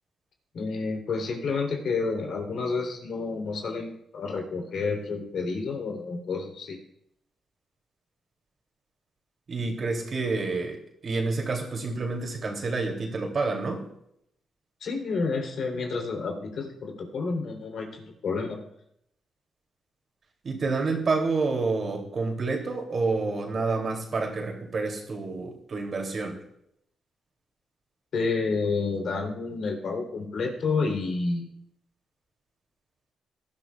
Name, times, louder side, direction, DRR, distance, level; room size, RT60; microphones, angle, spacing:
voice 1, 0.5-6.8 14.8-18.6 28.1-31.5, left 4 dB, 70° left, 2 dB, 3.4 m, -30 dB
voice 2, 9.5-10.8 11.0-13.8 20.4-26.4, right 3 dB, 50° right, 1 dB, 3.0 m, -28 dB
19.0 x 12.0 x 2.4 m, 0.76 s
cardioid pair, 80°, 0 cm